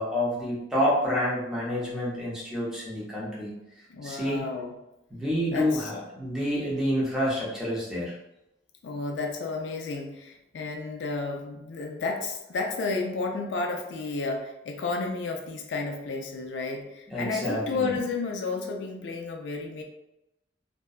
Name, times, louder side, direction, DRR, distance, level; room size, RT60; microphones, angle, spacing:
voice 1, 0.0-3.5 4.0-4.4 5.1-8.1 17.1-18.0, equal, 5° right, -7 dB, 0.6 m, -28 dB
voice 2, 3.9-4.7 5.5-5.9 8.8-19.8, left 3 dB, 75° left, 2 dB, 0.4 m, -32 dB
2.6 x 2.1 x 2.3 m, 0.90 s
head